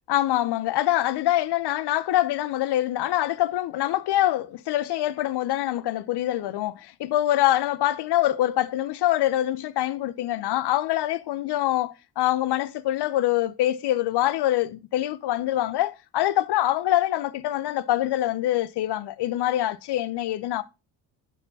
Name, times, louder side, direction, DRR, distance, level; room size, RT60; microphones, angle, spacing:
voice 1, 0.1-20.6, left 14 dB, 60° left, 0.8 m, -24 dB
11.5 x 4.5 x 4.1 m
supercardioid pair, 85°, 45 cm